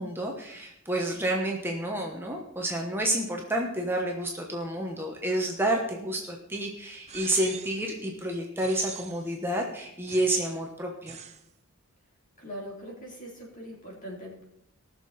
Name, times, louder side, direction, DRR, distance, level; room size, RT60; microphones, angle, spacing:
voice 1, 0.0-11.2, right 1 dB, 10° right, 0 dB, 1.1 m, -29 dB
sound 1, 7.1-7.9 8.6-9.3 10.1-10.6 11.1-11.4, right 7 dB, 30° right, 0.8 m, -43 dB
voice 2, 12.4-14.5, equal, 40° left, -3 dB, 3.4 m, -41 dB
19.5 x 6.8 x 4.2 m, 0.79 s
head